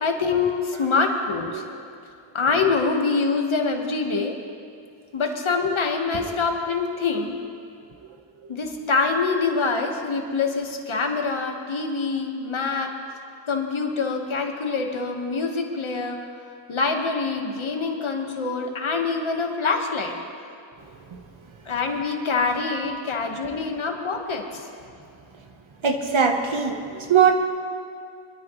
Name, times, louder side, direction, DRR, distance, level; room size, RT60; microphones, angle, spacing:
voice 1, 0.0-1.6 2.3-4.4 5.1-7.3 8.5-12.9 13.5-16.3 16.7-20.1 21.6-24.7, left 4 dB, 90° left, 2 dB, 1.6 m, -25 dB
voice 2, 25.8-27.3, right 7 dB, 85° right, 3 dB, 1.4 m, -21 dB
24.0 x 13.0 x 3.2 m, 2.4 s
wide cardioid pair, 55°, 47 cm